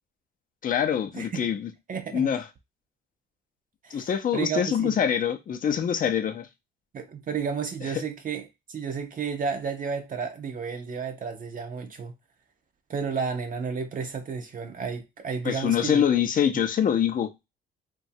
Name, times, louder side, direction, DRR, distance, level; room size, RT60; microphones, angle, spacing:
voice 1, 0.6-1.7 2.1-2.4 3.9-6.5 15.4-17.5, left 8 dB, 45° left, 0.5 m, -25 dB
voice 2, 1.1-1.5 1.9-2.3 3.8-5.0 6.9-12.1 12.9-16.0, right 6 dB, 45° right, 0.5 m, -32 dB
3.0 x 2.2 x 2.7 m
cardioid pair, 90°, 20 cm